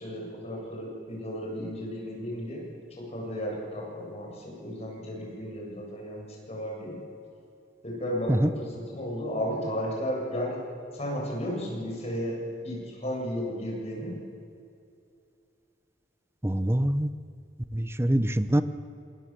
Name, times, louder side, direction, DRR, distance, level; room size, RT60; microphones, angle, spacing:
voice 1, 0.0-2.6 3.0-7.0 7.8-10.6 11.0-12.4 12.6-14.2, equal, 35° left, -2 dB, 7.8 m, -34 dB
voice 2, 16.4-17.1 17.7-18.6, right 1 dB, 15° right, 12 dB, 0.8 m, -24 dB
26.5 x 21.5 x 7.6 m, 2.6 s
head